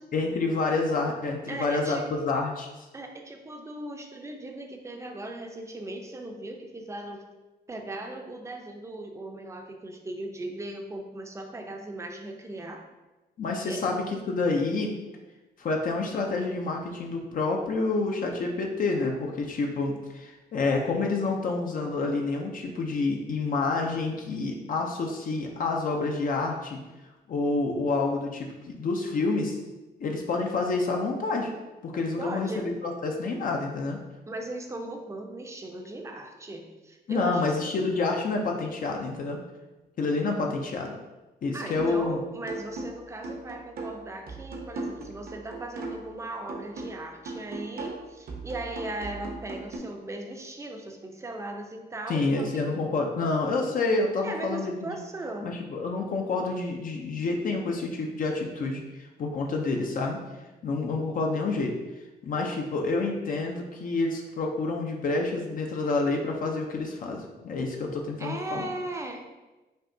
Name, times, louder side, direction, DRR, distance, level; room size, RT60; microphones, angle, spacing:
voice 1, 0.1-2.7 13.4-14.9 15.6-26.8 27.3-29.6 30.0-31.5 31.8-34.0 37.1-39.4 40.0-40.9 41.4-42.2 52.1-55.0 55.4-60.2 60.6-61.8 62.2-68.7, left 3 dB, 55° left, 1 dB, 0.6 m, -28 dB
voice 2, 1.5-2.1 2.9-7.2 7.7-12.8 13.7-13.8 32.2-32.8 34.3-37.6 41.5-52.6 54.2-55.6 68.2-69.2, right 1 dB, 15° right, 3 dB, 0.5 m, -38 dB
sound 1, 41.8-42.1 42.5-46.2 46.5-49.8, right 3 dB, 65° right, 0.8 m, -38 dB
5.4 x 2.8 x 2.7 m, 1.1 s
cardioid pair, 120°, 16 cm